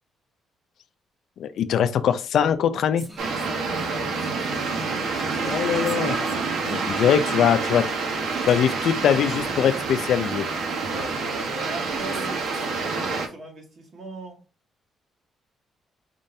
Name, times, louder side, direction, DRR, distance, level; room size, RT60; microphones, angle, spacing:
voice 1, 1.4-3.1 5.4-6.2 6.6-7.9 8.4-10.5, left 8 dB, 70° left, 0.5 m, -22 dB
sound 1, 3.0-12.7, right 2 dB, 15° right, 1.2 m, -45 dB
sound 2, 3.2-13.3, right 4 dB, 75° right, 1.2 m, -27 dB
voice 2, 3.5-5.0 6.5-6.9 10.9-14.4, right 2 dB, 55° right, 2.0 m, -39 dB
5.1 x 3.7 x 2.7 m
cardioid pair, 90°, 0 cm